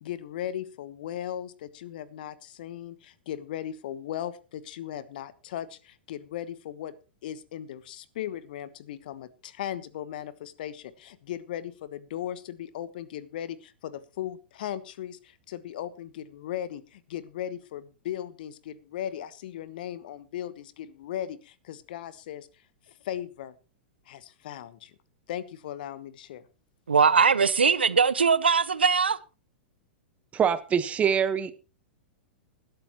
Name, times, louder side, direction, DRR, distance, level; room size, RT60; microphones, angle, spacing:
voice 1, 0.0-6.9 7.2-22.5 22.9-23.5 24.1-24.9 25.3-26.4, left 11 dB, 55° left, 1.2 m, -37 dB
voice 2, 26.9-29.2, right 5 dB, 80° right, 0.8 m, -21 dB
voice 3, 30.3-31.5, right 7 dB, 25° right, 1.4 m, -24 dB
20.5 x 12.0 x 3.1 m
figure-of-eight pair, 100°, 6 cm